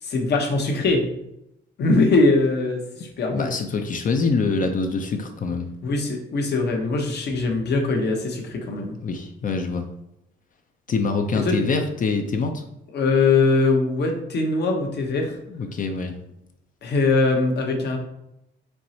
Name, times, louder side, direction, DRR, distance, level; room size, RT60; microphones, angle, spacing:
voice 1, 0.0-1.1 1.8-3.5 5.8-9.0 11.4-11.6 12.9-15.3 16.8-18.0, left 3 dB, 60° left, 2 dB, 0.9 m, -21 dB
voice 2, 3.3-5.7 9.0-9.9 10.9-12.6 15.5-16.2, left 4 dB, 45° left, 6 dB, 0.5 m, -25 dB
4.5 x 3.1 x 2.8 m, 0.81 s
cardioid pair, 90°, 20 cm